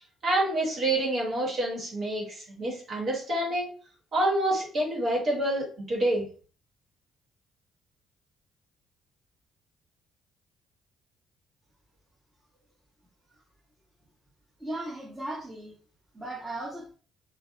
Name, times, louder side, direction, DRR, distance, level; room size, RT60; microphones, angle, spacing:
voice 1, 0.2-3.7 4.1-6.2, right 1 dB, 55° right, -3 dB, 1.2 m, -27 dB
voice 2, 14.6-15.7 16.1-16.9, right 1 dB, 20° right, -4 dB, 1.1 m, -36 dB
2.5 x 2.1 x 2.6 m, 0.40 s
hypercardioid pair, 50°, 0 cm